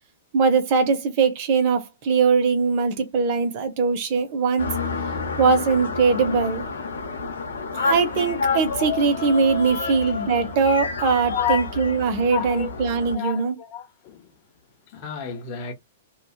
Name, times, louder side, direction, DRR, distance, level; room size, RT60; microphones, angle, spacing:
voice 1, 0.3-4.7 5.4-6.6 7.7-13.5, right 5 dB, 50° right, 0.8 m, -21 dB
sound 1, 4.6-13.1, left 4 dB, 90° left, 0.8 m, -29 dB
voice 2, 9.8-10.4 11.3-12.0 12.3-14.3 14.9-15.7, left 9 dB, 45° left, 0.8 m, -31 dB
2.6 x 2.3 x 2.3 m
hypercardioid pair, 125°, 0 cm